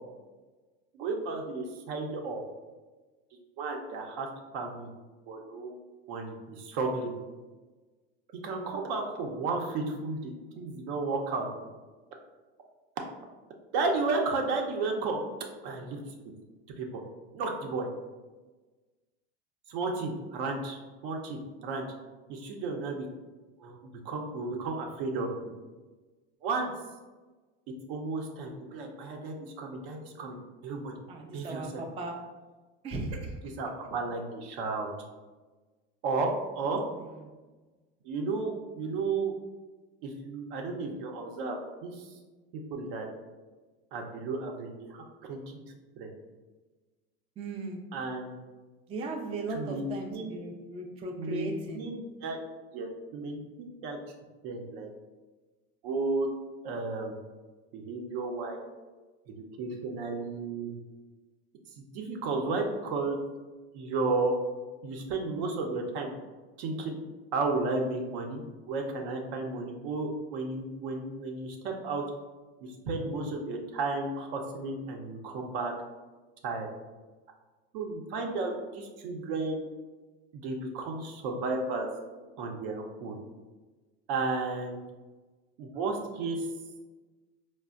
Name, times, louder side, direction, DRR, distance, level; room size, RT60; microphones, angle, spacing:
voice 1, 0.9-2.4 3.3-4.3 4.5-4.9 5.3-5.8 6.1-7.1 8.4-11.5 13.7-15.2 15.6-16.0 16.8-17.0 17.3-17.9 19.7-20.8 21.0-21.9 22.3-23.1 23.6-25.3 26.4-26.7 27.9-30.4 30.6-30.9 31.3-31.8 33.6-34.9 36.0-36.3 36.5-36.8 38.0-39.3 40.0-42.1 42.7-43.1 43.9-45.4 46.0-46.1 47.9-48.3 49.5-50.4 51.2-52.4 52.7-54.0 54.4-54.9 55.8-56.3 56.6-57.1 57.7-58.6 59.3-60.7 61.9-63.2 63.7-64.3 64.8-66.1 66.6-67.0 67.3-68.4 68.7-72.0 72.6-75.7 76.4-76.7 77.7-79.6 80.3-81.9 82.4-83.2 84.1-84.8 85.6-86.5, right 3 dB, 65° right, 2 dB, 0.7 m, -33 dB
voice 2, 31.1-32.2 32.8-33.4 36.9-37.2 47.4-47.8 48.9-51.8, right 2 dB, 20° right, 1 dB, 0.3 m, -37 dB
4.2 x 2.1 x 2.4 m, 1.3 s
supercardioid pair, 100°, 33 cm